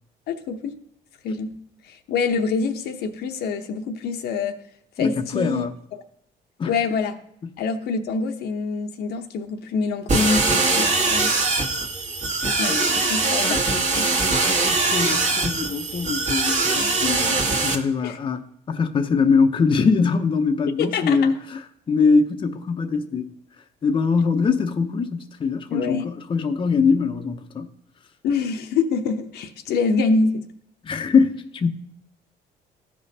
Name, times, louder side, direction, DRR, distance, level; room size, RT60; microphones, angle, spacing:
voice 1, 0.3-0.7 1.2-1.6 1.9-4.6 5.0-5.7 5.9-6.0 6.6-7.2 7.6-11.4 12.6-14.1 18.0-18.2 20.8-21.2 25.7-26.1 28.2-30.4, left 4 dB, 70° left, 0.8 m, -25 dB
voice 2, 5.0-5.7 6.6-6.7 12.4-12.8 13.5-13.6 14.3-23.3 23.8-27.7 30.8-31.7, left 5 dB, 30° left, 0.6 m, -22 dB
sound 1, 10.1-17.7, right 3 dB, 45° right, 1.4 m, -22 dB
14.5 x 5.2 x 2.8 m
cardioid pair, 110°, 17 cm